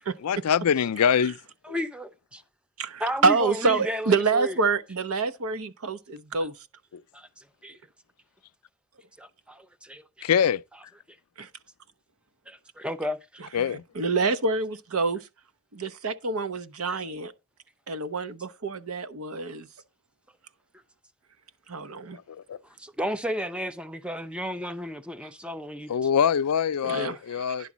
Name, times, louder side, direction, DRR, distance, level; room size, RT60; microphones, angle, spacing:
voice 1, 0.2-1.4 1.7-1.8 10.2-10.6 13.5-13.8 22.3-22.6 25.9-27.7, left 8 dB, 85° left, 0.4 m, -24 dB
voice 2, 1.7-2.4 3.0-4.6 7.1-7.3 7.6-7.8 9.2-10.3 12.5-13.4 16.9-17.0 22.8-25.9, equal, 5° right, 0.4 m, -33 dB
voice 3, 2.8-6.5 11.4-11.5 13.4-13.5 13.9-15.3 15.7-17.3 17.9-19.7 21.7-22.2 26.8-27.7, right 4 dB, 75° right, 0.8 m, -27 dB
10.5 x 3.8 x 7.3 m
head